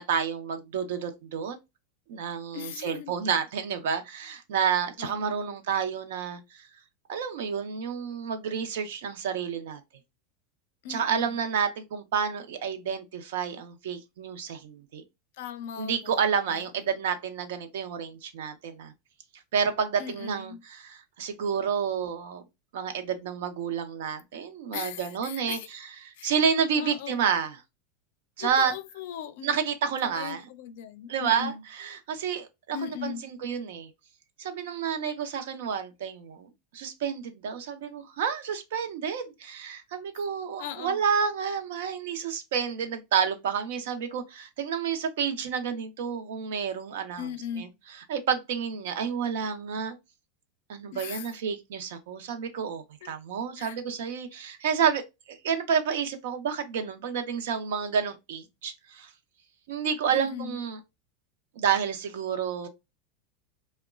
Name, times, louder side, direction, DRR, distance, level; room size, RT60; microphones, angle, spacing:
voice 1, 0.0-1.6 2.1-6.7 7.1-9.8 10.9-15.0 15.8-18.9 19.5-22.4 22.7-25.6 26.0-27.6 28.4-28.7 29.4-30.4 31.1-33.9 34.4-47.3 47.6-47.7 48.1-50.0 50.7-55.0 55.3-59.1 59.7-60.8 61.6-62.7, right 7 dB, 80° right, 0.5 m, -30 dB
voice 2, 2.5-3.1 5.0-5.5 10.8-11.4 15.4-16.2 16.5-16.9 20.0-20.6 24.7-25.7 26.2-26.3 26.8-27.2 28.4-29.6 30.0-31.6 32.7-33.2 40.6-41.0 47.2-47.7 50.9-51.3 53.0-53.1 53.6-53.8 60.1-60.6, left 9 dB, 70° left, 0.4 m, -39 dB
2.9 x 2.1 x 2.3 m
supercardioid pair, 130°, 0 cm